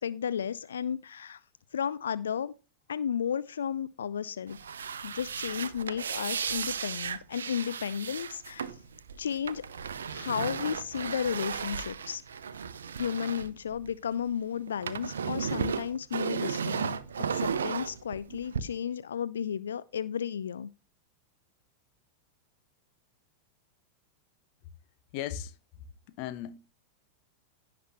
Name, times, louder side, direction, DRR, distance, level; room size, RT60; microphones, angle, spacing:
voice 1, 0.0-1.4 1.7-2.5 2.9-4.6 5.0-8.8 9.2-9.7 10.1-12.2 13.0-20.7, left 8 dB, 65° left, 0.4 m, -33 dB
sound 1, 4.5-14.3 14.5-18.6, right 6 dB, 70° right, 0.7 m, -35 dB
voice 2, 25.1-25.5 26.2-26.6, left 11 dB, 45° left, 1.0 m, -35 dB
16.5 x 6.0 x 3.0 m
figure-of-eight pair, 90°, 0 cm